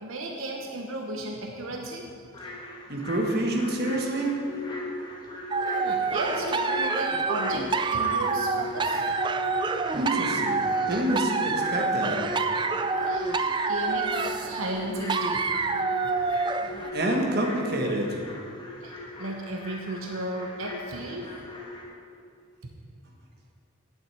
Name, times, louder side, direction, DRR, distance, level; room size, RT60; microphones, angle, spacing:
voice 1, 0.0-2.1 5.6-9.0 13.1-15.4 16.0-16.1 18.8-21.3, right 1 dB, 80° right, 1 dB, 1.0 m, -35 dB
sound 1, 2.3-21.8, left 1 dB, 20° left, 1.3 m, -41 dB
voice 2, 2.9-4.4 9.9-10.6 10.9-12.2 16.9-18.2, right 1 dB, 50° right, 0 dB, 1.5 m, -27 dB
sound 2, 4.5-5.0 5.4-5.9 6.4-6.8 7.3-7.8 8.2-8.7 9.2-9.7 10.1-10.6 11.0-11.5 12.0-12.5 12.9-13.4 13.9-14.3 14.8-15.3 15.7-16.2 16.7-17.2, left 3 dB, 80° left, 1.0 m, -37 dB
sound 3, 5.5-16.9, right 4 dB, 20° right, 0.3 m, -27 dB
9.2 x 7.4 x 8.2 m, 2.4 s
head